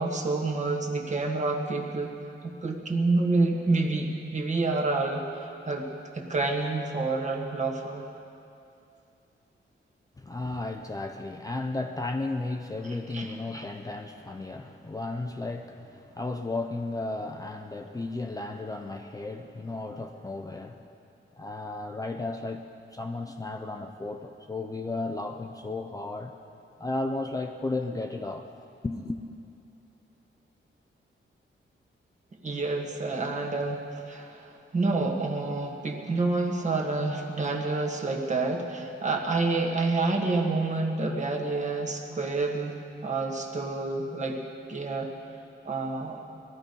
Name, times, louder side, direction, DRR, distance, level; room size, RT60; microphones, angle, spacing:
voice 1, 0.0-2.2 2.4-5.9 6.1-8.0 13.1-13.3 32.4-44.4 44.7-45.1 45.6-46.2, right 3 dB, 35° right, 1 dB, 1.5 m, -28 dB
voice 2, 10.2-20.9 21.3-26.4 26.8-28.5 28.8-29.2, left 2 dB, 15° left, 4 dB, 0.5 m, -34 dB
20.0 x 13.0 x 5.3 m, 2.6 s
wide cardioid pair, 175°, 21 cm